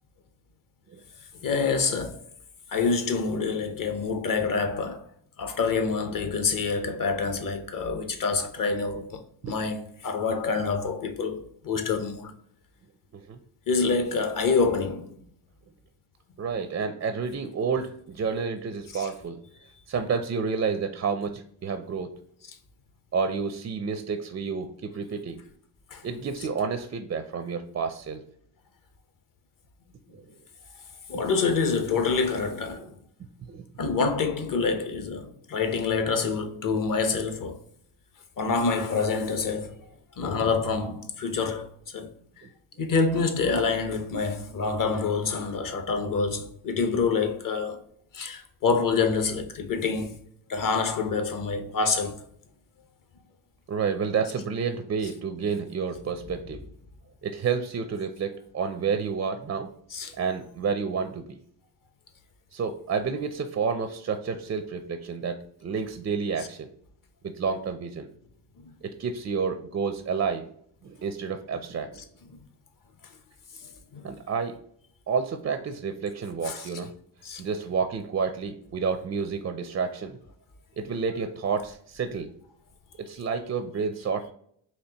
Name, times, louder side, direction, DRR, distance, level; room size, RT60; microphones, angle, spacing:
voice 1, 1.4-2.2 2.7-5.0 5.4-12.3 13.7-15.1 18.9-19.1 25.9-26.0 31.1-33.0 33.8-37.6 38.4-39.8 40.2-42.1 42.4-42.5 42.8-47.8 48.1-50.2 50.5-52.2 59.9-60.1 68.6-68.7 73.9-74.0 76.4-76.7 77.2-77.4, left 4 dB, 40° left, 0.8 m, -27 dB
voice 2, 16.4-19.4 19.9-22.1 23.1-25.4 26.0-28.2 30.1-30.2 31.1-31.2 32.7-32.9 33.5-33.6 42.4-42.5 53.7-56.6 57.2-59.7 60.2-61.4 62.5-66.7 67.3-68.1 68.8-70.4 70.8-72.0 74.0-74.6 75.1-76.9 77.4-80.2 80.8-82.3 83.0-84.3, right 5 dB, 30° right, 0.4 m, -30 dB
4.3 x 3.0 x 2.8 m
cardioid pair, 75°, 49 cm